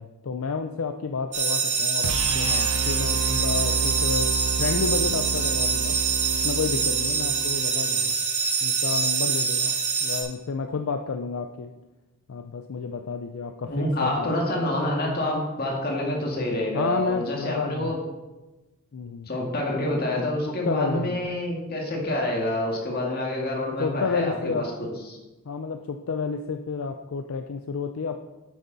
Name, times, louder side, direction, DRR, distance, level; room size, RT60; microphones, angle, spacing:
voice 1, 0.0-6.0 6.4-8.1 8.6-11.7 12.3-14.4 16.7-18.0 18.9-19.3 20.5-21.3 23.8-24.7 25.5-28.2, left 5 dB, 70° left, 7 dB, 0.5 m, -30 dB
sound 1, 1.3-10.2, right 5 dB, 35° right, 1.9 m, -25 dB
sound 2, 2.0-8.2, right 4 dB, 70° right, 0.5 m, -31 dB
voice 2, 13.7-18.0 19.3-24.7 25.1-25.2, left 1 dB, 45° left, -1 dB, 2.1 m, -27 dB
9.2 x 8.2 x 4.0 m, 1.1 s
head